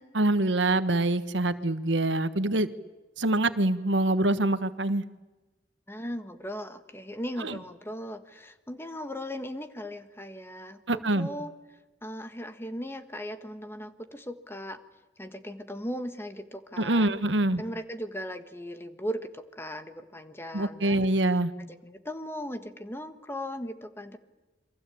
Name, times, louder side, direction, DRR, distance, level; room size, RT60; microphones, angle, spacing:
voice 1, 0.1-2.7 3.2-5.0 10.9-11.3 16.8-17.6 20.5-21.5, right 2 dB, 90° right, 12 dB, 1.4 m, -25 dB
voice 2, 5.9-11.5 12.0-14.8 15.2-17.2 17.6-24.2, equal, 15° left, 9 dB, 1.6 m, -38 dB
29.0 x 24.0 x 8.6 m, 1.1 s
head